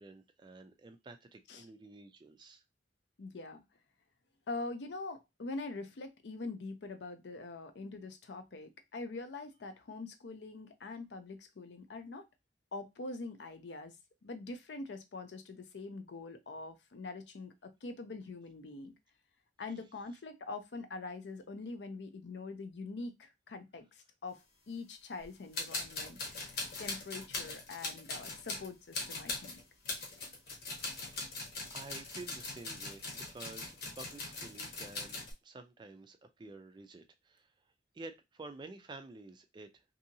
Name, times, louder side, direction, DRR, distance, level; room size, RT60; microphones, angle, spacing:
voice 1, 0.0-2.6 30.9-31.4 31.7-37.5 37.9-39.8, right 3 dB, 25° right, 0.3 m, -51 dB
voice 2, 3.2-3.6 4.5-12.3 12.7-14.0 14.2-18.9 19.6-29.6, left 3 dB, 75° left, 0.5 m, -44 dB
sound 1, 25.2-25.3 25.5-35.3, left 3 dB, 55° left, 0.9 m, -41 dB
2.7 x 2.7 x 2.6 m
head